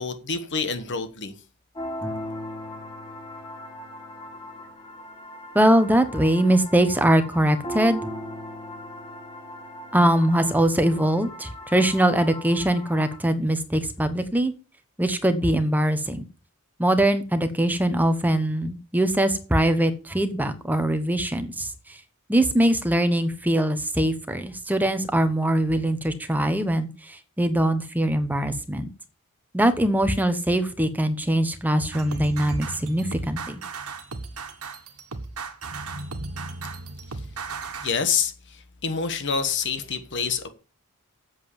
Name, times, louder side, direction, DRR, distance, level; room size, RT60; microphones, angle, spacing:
voice 1, 0.0-1.3 37.8-40.5, left 6 dB, 55° left, 1.3 m, -27 dB
sound 1, 1.7-13.2, equal, 20° left, 2.4 m, -38 dB
voice 2, 5.5-8.0 9.9-14.5 15.0-16.3 16.8-22.0 22.3-28.9 29.5-33.6, right 1 dB, 10° right, 1.1 m, -22 dB
sound 2, 31.9-37.9, right 3 dB, 80° right, 1.5 m, -35 dB
8.5 x 7.6 x 7.2 m
head